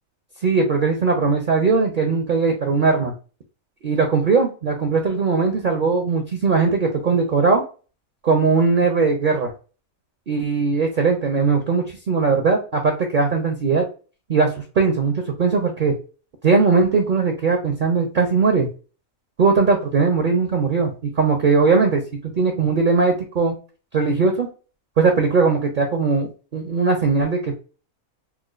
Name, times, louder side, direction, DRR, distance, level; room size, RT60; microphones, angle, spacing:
voice 1, 0.4-3.1 3.8-7.6 8.2-9.5 10.3-13.8 14.3-16.0 16.4-18.7 19.4-20.9 21.2-22.0 22.4-23.6 23.9-24.5 25.0-27.6, right 4 dB, 50° right, 3 dB, 0.6 m, -19 dB
4.3 x 2.3 x 2.4 m, 0.35 s
omnidirectional pair, 1.5 m